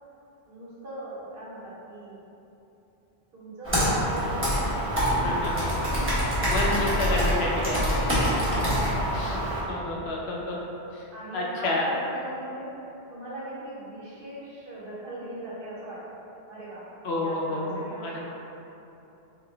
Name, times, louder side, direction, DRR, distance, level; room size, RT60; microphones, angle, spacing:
voice 1, 0.5-2.2 3.3-3.8 4.1-6.8 7.5-9.6 11.1-12.7 13.1-16.2 16.5-16.8 17.1-18.2, right 1 dB, 60° right, -8 dB, 1.2 m, -40 dB
Computer keyboard, 3.6-9.6, equal, 10° right, 1.1 m, -25 dB
voice 2, 5.2-5.7 6.5-7.8 9.1-9.4 9.7-10.6 10.9-11.0 11.3-11.9 17.0-18.2, left 2 dB, 80° left, -3 dB, 0.9 m, -29 dB
3.9 x 3.1 x 3.3 m, 2.9 s
omnidirectional pair, 1.1 m